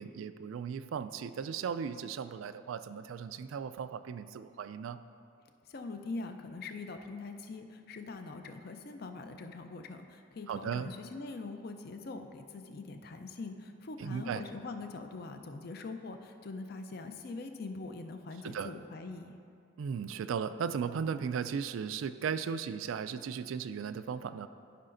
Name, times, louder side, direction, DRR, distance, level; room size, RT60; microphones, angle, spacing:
voice 1, 0.0-5.0 10.5-10.9 14.0-14.4 18.4-18.7 19.8-24.5, right 6 dB, 85° right, 12 dB, 0.3 m, -36 dB
voice 2, 5.7-19.4, left 3 dB, 50° left, 6 dB, 0.5 m, -43 dB
13.5 x 5.7 x 2.6 m, 2.5 s
head